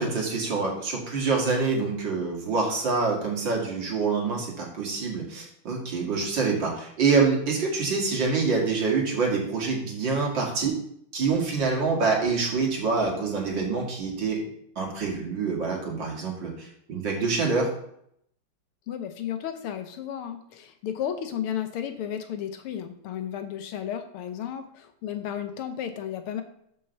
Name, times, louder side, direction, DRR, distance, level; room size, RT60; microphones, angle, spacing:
voice 1, 0.0-10.8 11.1-14.4 14.8-17.7, right 4 dB, 55° right, -2 dB, 2.9 m, -26 dB
voice 2, 18.9-26.4, left 9 dB, 80° left, 8 dB, 1.8 m, -33 dB
6.7 x 5.7 x 6.7 m, 0.71 s
omnidirectional pair, 2.4 m